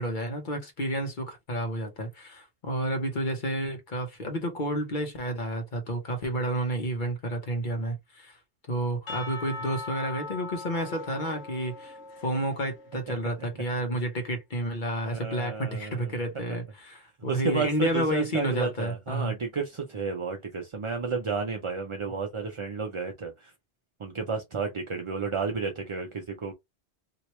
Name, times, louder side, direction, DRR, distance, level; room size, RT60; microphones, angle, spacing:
voice 1, 0.0-8.4 8.7-12.0 12.2-19.3, right 1 dB, 45° left, 1.1 m, -30 dB
Percussion / Church bell, 9.1-13.2, left 3 dB, 85° left, 1.2 m, -40 dB
voice 2, 15.1-16.2 17.3-23.5 24.0-26.5, right 5 dB, 40° right, 0.4 m, -32 dB
3.0 x 2.8 x 3.0 m
omnidirectional pair, 1.2 m